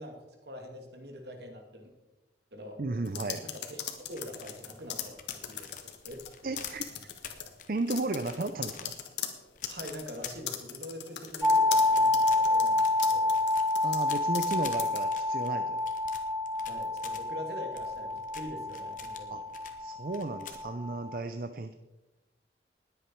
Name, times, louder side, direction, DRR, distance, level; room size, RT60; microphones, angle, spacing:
voice 1, 0.0-1.9 2.5-2.8 3.4-5.7 6.0-6.5 7.4-7.6 9.7-13.4 16.6-19.4, equal, 70° right, 4 dB, 2.3 m, -44 dB
voice 2, 2.8-3.4 6.4-6.8 7.7-8.9 13.8-15.8 19.3-19.4 19.8-21.7, right 2 dB, 55° right, 9 dB, 0.6 m, -34 dB
sound 1, 3.1-6.3 6.6-7.5 7.9-14.5 14.8-15.0, left 10 dB, 85° left, 1.5 m, -39 dB
sound 2, 4.0-10.9 11.3-17.2 17.7-19.8 20.1-20.7, left 8 dB, 50° left, 1.2 m, -48 dB
sound 3, 11.4-21.2, left 2 dB, 5° right, 0.3 m, -28 dB
20.0 x 8.3 x 4.5 m, 1.0 s
head